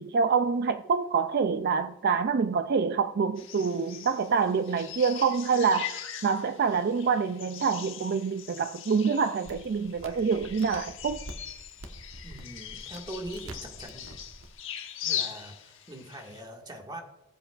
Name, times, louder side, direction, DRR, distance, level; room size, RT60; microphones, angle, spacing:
voice 1, 0.0-11.2, right 5 dB, 50° right, 0.4 m, -26 dB
sound 1, 3.4-16.4, left 10 dB, 65° left, 1.1 m, -40 dB
sound 2, 9.4-14.5, right 1 dB, 90° right, 1.2 m, -46 dB
voice 2, 12.2-14.0 15.0-17.0, right 1 dB, 20° right, 1.9 m, -42 dB
20.0 x 7.8 x 2.5 m
head